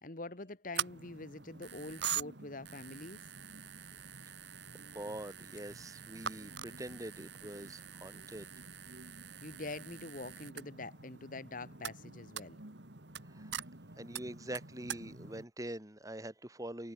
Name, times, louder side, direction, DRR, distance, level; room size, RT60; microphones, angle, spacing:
voice 1, 0.0-3.2 9.4-12.6, left 2 dB, 50° left, 1.9 m, -45 dB
sound 1, 0.7-15.5, right 8 dB, 80° right, 3.1 m, -44 dB
voice 2, 4.9-8.5 13.3-13.5 14.0-16.9, right 1 dB, 20° right, 4.1 m, -44 dB
head